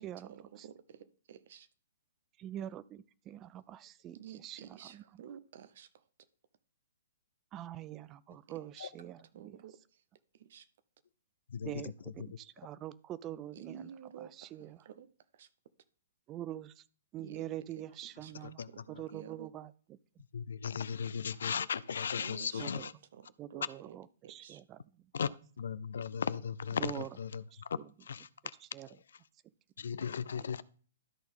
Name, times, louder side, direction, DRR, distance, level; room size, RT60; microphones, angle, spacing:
voice 1, 0.0-1.7 4.1-5.9 8.5-10.0 10.3-10.7 13.5-15.5 17.2-17.4 17.8-17.9 18.2-19.5 22.2-24.0 24.2-24.6 30.3-30.6, right 9 dB, 55° right, 14 dB, 0.7 m, -52 dB
voice 2, 2.4-4.2 4.4-4.6 4.9-5.0 7.5-9.6 11.6-13.9 14.4-14.8 16.3-16.7 17.1-19.7 22.6-22.9 23.4-24.8 26.8-27.1 27.5-27.8 28.7-28.9, right 12 dB, 25° right, 17 dB, 0.4 m, -44 dB
voice 3, 11.5-11.9 18.4-18.7 18.9-19.0 20.3-22.9 25.1-25.3 25.6-28.5 28.9-29.0 29.8-30.6, left 7 dB, 65° left, 19 dB, 0.4 m, -37 dB
12.5 x 4.3 x 3.5 m, 0.42 s
figure-of-eight pair, 120°, 0 cm